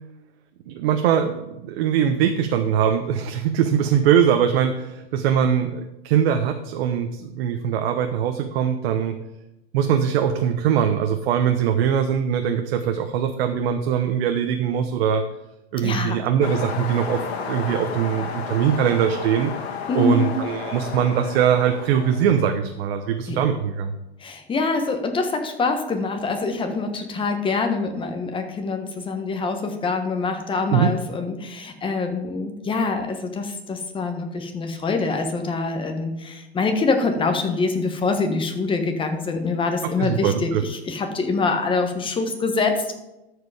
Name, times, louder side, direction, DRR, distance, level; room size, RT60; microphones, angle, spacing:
voice 1, 0.7-9.2 9.7-15.2 15.7-17.2 17.5-19.5 19.9-23.9 30.7-30.9 40.0-40.6, right 8 dB, 65° right, 6 dB, 0.9 m, -21 dB
voice 2, 15.8-16.2 19.9-20.3 23.3-23.4 24.2-42.9, left 3 dB, 15° left, 5 dB, 1.2 m, -25 dB
sound 1, 16.4-22.5, left 5 dB, 75° left, 1.8 m, -32 dB
13.0 x 5.0 x 4.8 m, 0.94 s
supercardioid pair, 140°, 32 cm